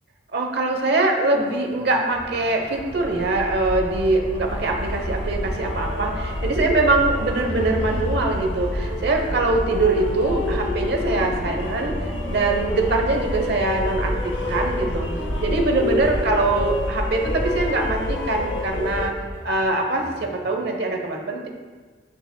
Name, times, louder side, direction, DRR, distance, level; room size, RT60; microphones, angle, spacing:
voice 1, 0.3-15.1 15.4-19.1 19.4-21.5, right 2 dB, 60° right, 3 dB, 0.9 m, -23 dB
sound 1, 1.3-20.5, right 1 dB, 30° right, 1.6 m, -43 dB
sound 2, 2.6-18.2, equal, 5° right, 0.3 m, -35 dB
sound 3, 2.9-19.1, left 2 dB, 75° left, 0.8 m, -28 dB
8.6 x 6.5 x 2.3 m, 1.4 s
head